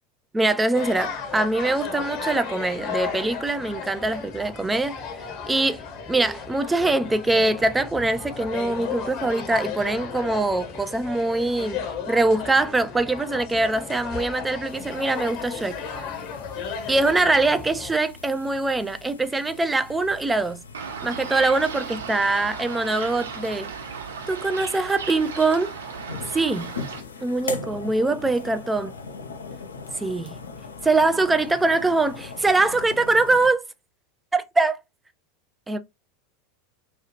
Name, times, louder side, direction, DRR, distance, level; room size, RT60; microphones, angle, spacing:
voice 1, 0.3-4.9 5.5-11.8 12.1-15.8 16.9-20.6 21.0-23.7 24.3-25.7 26.3-26.7 27.2-28.9 30.0-30.4 30.8-33.6 34.3-34.8 35.7-35.8, right 2 dB, 10° right, 0.4 m, -23 dB
sound 1, 0.7-17.9, left 6 dB, 50° left, 0.9 m, -34 dB
sound 2, 14.7-33.5, left 4 dB, 80° left, 0.4 m, -41 dB
sound 3, 20.7-27.0, right 6 dB, 75° right, 0.9 m, -36 dB
3.0 x 2.3 x 2.8 m
figure-of-eight pair, 85°, 0 cm